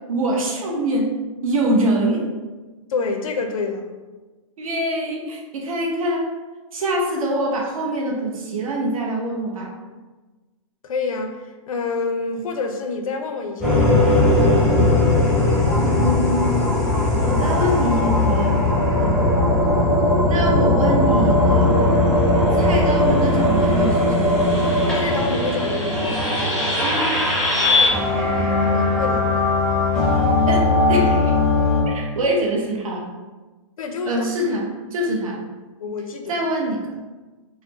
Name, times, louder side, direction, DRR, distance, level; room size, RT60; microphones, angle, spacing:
voice 1, 0.1-1.1 1.4-2.2 4.6-6.3 6.7-9.7 15.8-16.7 17.2-18.6 20.3-21.8 22.5-24.4 26.8-27.1 30.5-31.3 31.8-33.1 34.1-35.4 36.3-36.8, right 1 dB, 90° right, -1 dB, 0.9 m, -24 dB
voice 2, 2.9-3.9 10.8-14.1 18.9-19.2 24.9-26.2 27.5-29.5 33.8-34.3 35.8-36.4, left 4 dB, 90° left, 5 dB, 0.6 m, -28 dB
sound 1, 13.6-31.8, left 2 dB, 5° left, 0.4 m, -18 dB
4.1 x 2.1 x 2.8 m, 1.2 s
hypercardioid pair, 175°, 17 cm